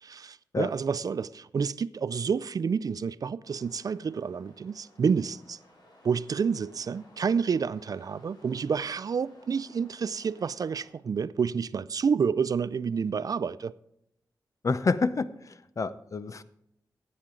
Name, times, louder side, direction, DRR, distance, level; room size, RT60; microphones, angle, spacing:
voice 1, 0.0-5.6 6.0-13.7, right 6 dB, 55° right, 0.4 m, -29 dB
sound 1, 3.4-10.9, left 1 dB, 75° left, 4.7 m, -58 dB
voice 2, 14.6-16.4, left 4 dB, 45° left, 0.6 m, -28 dB
15.5 x 8.7 x 3.8 m
wide cardioid pair, 85°, 7 cm